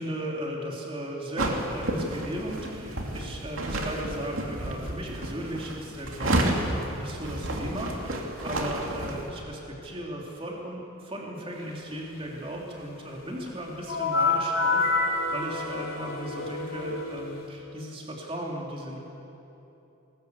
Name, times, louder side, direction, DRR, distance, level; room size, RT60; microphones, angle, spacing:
voice 1, 0.0-15.0 15.3-19.0, right 1 dB, 25° right, -1 dB, 3.0 m, -36 dB
sound 1, 1.4-9.3, right 1 dB, 70° right, 2.6 m, -31 dB
sound 2, 13.9-17.5, left 3 dB, 85° left, 3.8 m, -28 dB
20.5 x 19.5 x 8.2 m, 3.0 s
head